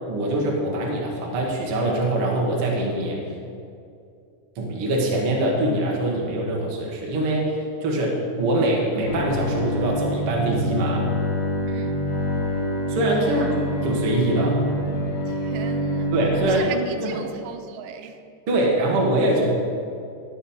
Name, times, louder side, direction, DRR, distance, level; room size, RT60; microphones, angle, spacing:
voice 1, 0.1-3.2 4.5-11.0 12.9-13.5 13.8-14.6 16.1-17.1 18.5-19.5, right 1 dB, 50° right, 1.8 m, -23 dB
Bowed string instrument, 9.1-16.6, equal, 40° left, 1.9 m, -26 dB
voice 2, 11.7-12.0 13.2-13.6 15.3-16.1 16.5-18.2, right 8 dB, 90° right, 2.9 m, -37 dB
19.5 x 6.8 x 4.4 m
omnidirectional pair, 4.9 m